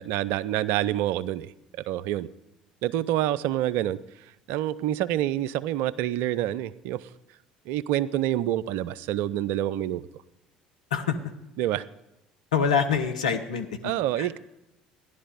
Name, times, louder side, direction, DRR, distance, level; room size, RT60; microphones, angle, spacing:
voice 1, 0.0-1.5 1.8-2.3 2.8-7.1 7.7-10.1 11.6-11.8 13.8-14.4, right 13 dB, 65° right, 18 dB, 0.5 m, -27 dB
voice 2, 12.5-14.3, left 6 dB, 80° left, 6 dB, 1.1 m, -26 dB
14.5 x 11.0 x 5.1 m, 0.91 s
hypercardioid pair, 60°, 4 cm